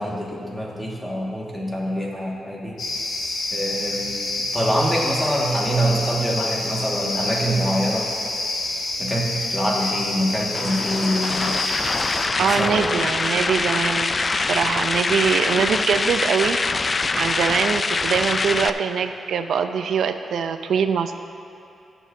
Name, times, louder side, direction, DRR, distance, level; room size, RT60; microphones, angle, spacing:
voice 1, 0.0-2.8 3.5-8.1 9.0-11.6 12.4-13.0, equal, 15° left, -3 dB, 1.9 m, -25 dB
sound 1, 2.8-12.3, left 2 dB, 75° left, 1.6 m, -28 dB
sound 2, 10.5-18.7, left 3 dB, 35° left, 0.3 m, -24 dB
voice 2, 12.4-21.1, right 6 dB, 80° right, 8 dB, 0.5 m, -23 dB
20.0 x 7.1 x 2.8 m, 2.9 s
cardioid pair, 105°, 0 cm